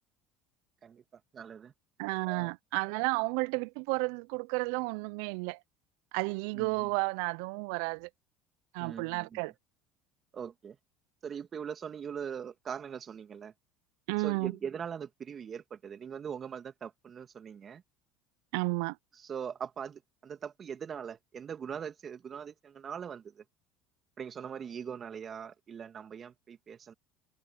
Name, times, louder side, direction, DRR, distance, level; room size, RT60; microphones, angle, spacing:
voice 1, 1.3-1.7 2.2-2.5 6.5-6.9 8.8-9.4 10.3-10.8 11.2-13.5 14.2-17.8 19.2-23.4 24.2-26.9, right 7 dB, 40° right, 2.6 m, -41 dB
voice 2, 2.0-5.6 6.1-8.1 8.7-9.5 14.1-14.5 18.5-19.0, right 27 dB, 70° right, 0.8 m, -32 dB
hypercardioid pair, 75°, 0 cm